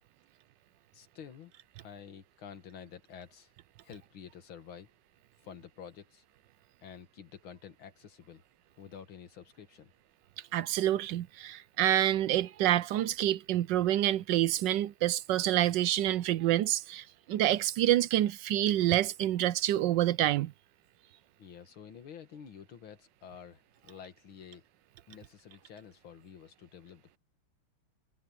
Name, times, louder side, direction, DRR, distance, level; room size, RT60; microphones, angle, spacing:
voice 1, 0.9-1.5 1.8-3.5 3.8-4.9 5.4-6.2 6.8-8.4 8.7-9.9 21.4-24.6 25.1-27.2, left 7 dB, 85° left, 2.5 m, -49 dB
voice 2, 10.5-20.5, right 13 dB, 75° right, 1.2 m, -27 dB
omnidirectional pair, 2.2 m